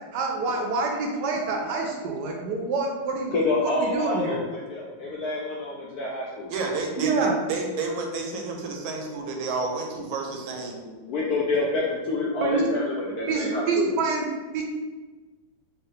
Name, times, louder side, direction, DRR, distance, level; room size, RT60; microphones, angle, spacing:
voice 1, 0.1-3.3 3.6-4.4 7.0-7.3 12.4-12.7 13.3-14.3 14.5-14.6, right 4 dB, 75° right, 1 dB, 1.0 m, -26 dB
voice 2, 3.3-6.5 10.9-13.9, left 2 dB, 75° left, -4 dB, 0.8 m, -27 dB
voice 3, 6.5-10.8, right 3 dB, 90° right, 2 dB, 1.4 m, -30 dB
3.5 x 2.7 x 3.5 m, 1.3 s
omnidirectional pair, 2.1 m